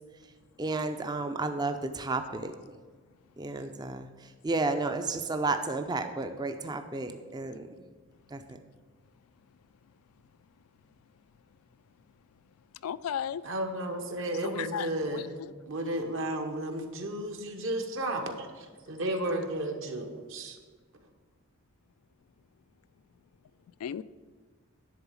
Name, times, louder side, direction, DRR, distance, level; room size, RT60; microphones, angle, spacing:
voice 1, 0.6-2.6 3.4-7.7 8.3-8.6, right 3 dB, 20° right, 7 dB, 0.4 m, -32 dB
voice 2, 12.8-13.4 14.4-15.3 23.8-24.0, left 9 dB, 85° left, 16 dB, 0.3 m, -34 dB
voice 3, 13.4-15.3 15.7-20.6, right 1 dB, 60° right, 5 dB, 1.1 m, -33 dB
10.5 x 4.0 x 7.2 m, 1.4 s
head